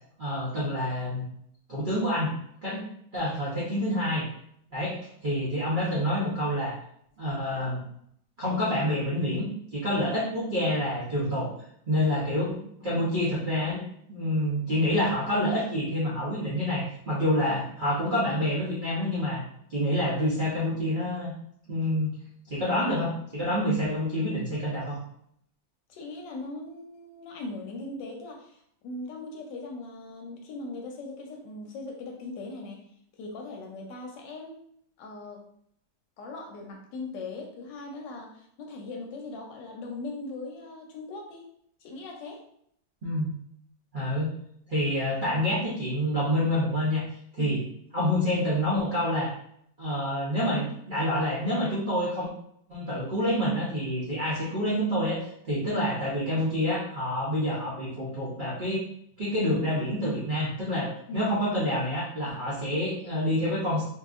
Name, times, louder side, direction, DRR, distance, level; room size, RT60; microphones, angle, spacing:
voice 1, 0.2-1.2 1.7-2.3 2.6-2.7 3.1-4.2 4.7-6.7 7.2-7.8 8.4-11.5 11.8-12.6 12.8-13.8 14.1-19.4 19.7-21.3 21.7-22.1 22.5-25.0 43.0-43.3 43.9-44.3 44.7-47.0 47.3-47.6 47.9-49.3 49.8-52.3 52.7-58.8 59.2-63.8, left 1 dB, 85° right, -8 dB, 0.4 m, -27 dB
voice 2, 25.9-32.8 33.2-34.6 35.0-35.4 36.2-41.5 41.8-42.4 47.4-47.5 61.1-61.3, left 2 dB, 75° left, 1 dB, 1.2 m, -39 dB
2.8 x 2.7 x 2.4 m, 0.69 s
omnidirectional pair, 2.1 m